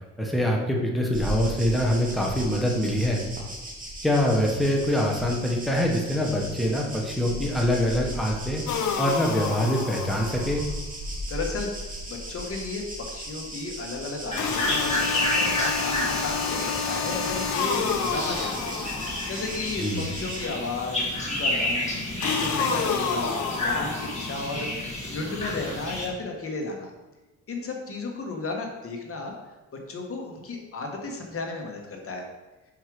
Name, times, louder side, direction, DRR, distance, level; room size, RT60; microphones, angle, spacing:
voice 1, 0.2-3.2 4.0-8.6 9.0-10.7 19.8-20.1, equal, ahead, -1 dB, 1.1 m, -24 dB
sound 1, 1.1-20.5, equal, 25° right, 1.8 m, -38 dB
sound 2, 8.7-10.6 14.4-19.6 22.2-24.6, left 5 dB, 75° left, 0.8 m, -29 dB
voice 2, 11.3-11.7 12.1-12.8 13.1-18.7 19.3-22.0 22.4-24.7 25.1-26.9 27.5-29.3 29.9-32.2, left 3 dB, 50° left, 2 dB, 1.3 m, -33 dB
sound 3, 14.3-26.1, left 1 dB, 20° left, 2.3 m, -30 dB
5.4 x 4.8 x 4.8 m, 1.1 s
cardioid pair, 90°, 30 cm